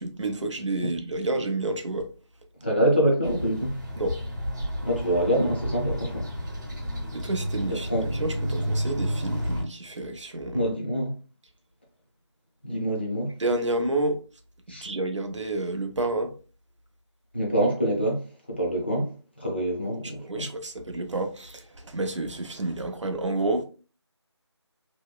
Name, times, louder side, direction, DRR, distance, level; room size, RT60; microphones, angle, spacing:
voice 1, 0.0-2.1 4.0-4.2 7.1-10.7 13.4-14.2 14.8-16.3 20.2-23.6, right 2 dB, 85° right, 0.6 m, -29 dB
voice 2, 2.6-3.8 4.8-6.3 7.7-8.1 10.5-11.2 12.6-13.3 14.7-14.9 17.3-20.5, right 1 dB, 20° left, 0.5 m, -26 dB
sound 1, 3.2-9.6, equal, 40° right, 0.7 m, -31 dB
2.8 x 2.0 x 2.2 m
figure-of-eight pair, 170°, 15 cm